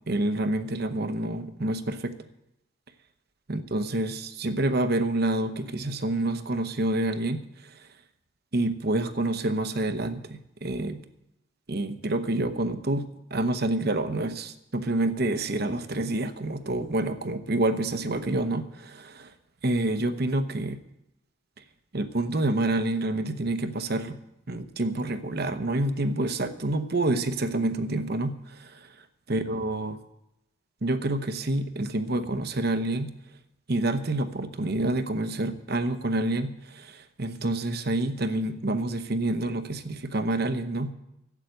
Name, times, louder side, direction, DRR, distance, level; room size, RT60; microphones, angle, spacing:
voice 1, 0.1-2.1 3.5-7.9 8.5-11.0 11.7-19.3 19.6-20.8 21.9-24.2 24.5-28.9 29.3-30.0 30.8-33.1 33.7-40.9, right 2 dB, 50° right, 10 dB, 0.9 m, -28 dB
13.0 x 8.2 x 7.9 m, 0.85 s
head